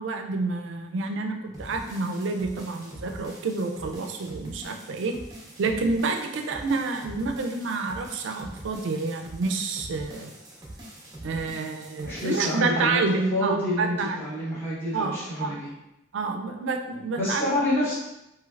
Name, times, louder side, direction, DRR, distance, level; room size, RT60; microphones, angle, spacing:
voice 1, 0.0-5.2 5.6-10.3 11.2-14.3 14.9-15.6 16.1-17.5, right 3 dB, 70° right, 5 dB, 0.4 m, -28 dB
sound 1, 1.5-12.5, right 1 dB, 20° right, 0.6 m, -44 dB
voice 2, 12.0-15.7 17.2-17.9, left 1 dB, 10° left, -10 dB, 0.9 m, -28 dB
3.1 x 2.8 x 2.4 m, 0.88 s
head